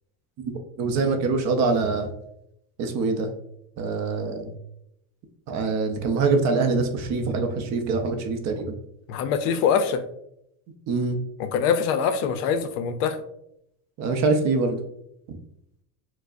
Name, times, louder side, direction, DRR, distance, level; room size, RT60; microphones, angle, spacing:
voice 1, 0.4-2.1 2.8-3.3 3.8-4.5 5.5-8.8 10.9-11.2 14.0-14.8, right 4 dB, 45° right, 5 dB, 0.5 m, -24 dB
voice 2, 9.1-10.0 11.4-13.2, left 7 dB, 65° left, 9 dB, 0.5 m, -23 dB
4.4 x 2.0 x 2.4 m, 0.78 s
supercardioid pair, 125°, 41 cm